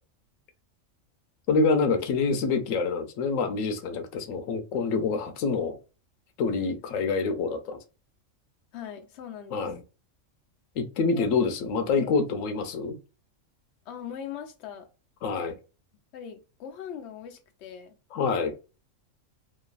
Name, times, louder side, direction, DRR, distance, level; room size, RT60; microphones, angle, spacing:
voice 1, 1.5-5.8 6.4-7.8 9.5-9.8 10.8-12.9 15.2-15.6 18.1-18.5, left 4 dB, 90° left, 1.0 m, -26 dB
voice 2, 8.7-9.7 11.1-11.3 12.0-12.1 13.9-14.9 16.1-18.0, left 8 dB, 65° left, 0.8 m, -40 dB
3.0 x 2.3 x 2.3 m
omnidirectional pair, 1.3 m